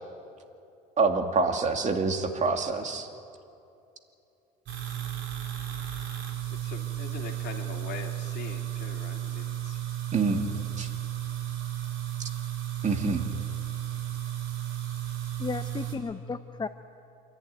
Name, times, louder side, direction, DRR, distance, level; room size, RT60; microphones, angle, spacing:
voice 1, 1.0-3.1 10.1-10.4 10.8-10.9 12.8-13.2, right 4 dB, 35° right, 4 dB, 2.5 m, -26 dB
sound 1, 4.7-16.0, right 11 dB, 65° right, 3.9 m, -34 dB
voice 2, 6.6-9.8, left 8 dB, 55° left, 3 dB, 2.7 m, -42 dB
voice 3, 15.4-16.7, left 4 dB, 20° left, 10 dB, 0.8 m, -34 dB
27.5 x 11.5 x 9.5 m, 2.6 s
supercardioid pair, 85°, 20 cm